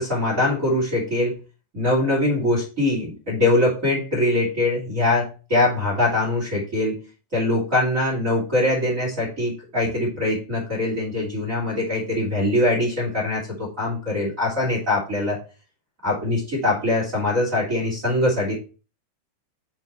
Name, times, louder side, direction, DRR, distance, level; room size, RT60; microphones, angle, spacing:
voice 1, 0.0-1.4 1.7-7.0 7.3-15.4 16.0-18.5, left 2 dB, 30° right, -3 dB, 1.7 m, -22 dB
7.3 x 4.5 x 4.2 m, 0.34 s
omnidirectional pair, 5.6 m